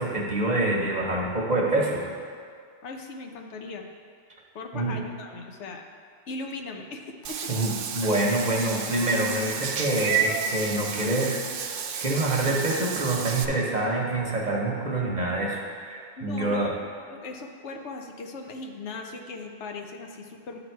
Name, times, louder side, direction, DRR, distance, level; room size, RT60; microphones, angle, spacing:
voice 1, 0.0-2.1 4.7-5.0 7.5-16.7, right 2 dB, 40° right, -2 dB, 1.0 m, -26 dB
voice 2, 2.8-3.9 4.5-5.8 6.3-7.5 16.2-16.8 17.1-20.6, left 3 dB, 75° left, 3 dB, 1.0 m, -38 dB
Meow / Water / Bathtub (filling or washing), 7.2-13.4, right 7 dB, 60° right, 0.6 m, -31 dB
11.0 x 4.0 x 4.5 m, 2.1 s
omnidirectional pair, 1.2 m